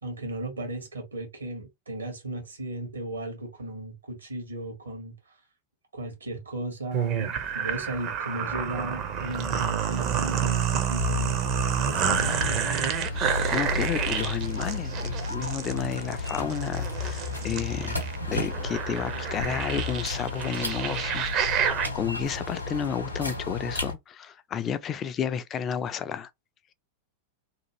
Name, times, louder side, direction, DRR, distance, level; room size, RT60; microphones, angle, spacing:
voice 1, 0.0-5.4 5.9-11.4 11.7-12.5, right 1 dB, 75° right, 1.1 m, -36 dB
sound 1, 6.9-21.9, right 8 dB, 35° right, 0.5 m, -29 dB
sound 2, 11.0-23.9, left 3 dB, 85° left, 0.6 m, -33 dB
voice 2, 13.1-18.0 18.3-26.3, left 8 dB, 25° left, 0.4 m, -32 dB
2.7 x 2.4 x 2.9 m
figure-of-eight pair, 90°, 0 cm